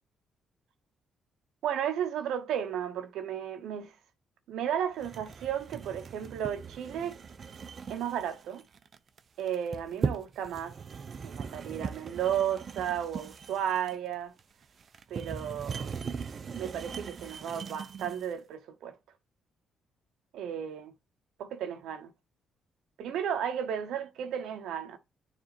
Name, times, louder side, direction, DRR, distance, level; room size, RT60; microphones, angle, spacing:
voice 1, 1.6-3.9 4.5-7.2 7.9-8.6 9.4-10.8 11.2-14.3 15.1-15.9 16.6-19.0 20.3-20.9 21.4-22.1 23.0-25.0, right 9 dB, 80° right, 0.8 m, -33 dB
sound 1, 5.0-18.3, right 5 dB, 45° right, 0.6 m, -39 dB
9.7 x 3.4 x 2.9 m
cardioid pair, 90°, 0 cm